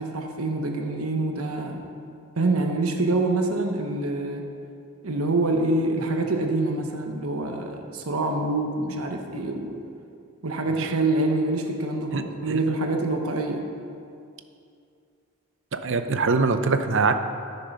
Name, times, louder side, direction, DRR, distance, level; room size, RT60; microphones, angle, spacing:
voice 1, 0.0-1.8 2.4-4.4 5.0-9.8 10.4-13.7, right 2 dB, 85° right, 3 dB, 1.1 m, -26 dB
voice 2, 15.7-17.1, right 4 dB, 60° right, 8 dB, 0.6 m, -23 dB
13.5 x 6.7 x 5.5 m, 2.4 s
head